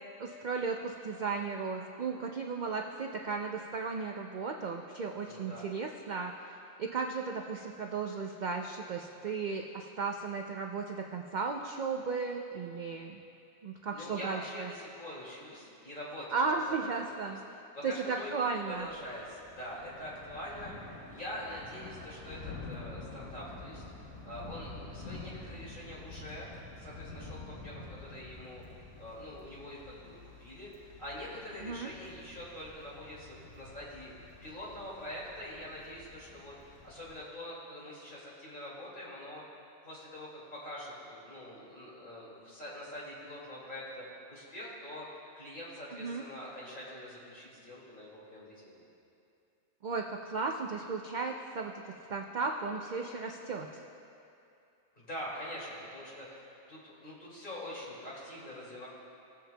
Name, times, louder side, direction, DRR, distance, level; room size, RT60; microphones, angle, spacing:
voice 1, 0.2-13.2 13.6-14.7 16.3-17.4 17.8-18.9 25.0-25.2 31.6-31.9 45.9-46.2 49.8-51.7 52.1-53.7, right 4 dB, 60° right, 2 dB, 0.5 m, -35 dB
voice 2, 5.3-5.7 13.9-17.3 17.7-23.8 24.3-34.1 34.4-39.4 39.8-45.1 45.3-48.8 55.0-58.9, left 1 dB, 40° left, -7 dB, 2.5 m, -44 dB
Thunder / Rain, 18.7-37.1, left 3 dB, 80° left, 1.8 m, -48 dB
20.0 x 7.4 x 2.2 m, 2.6 s
omnidirectional pair, 1.3 m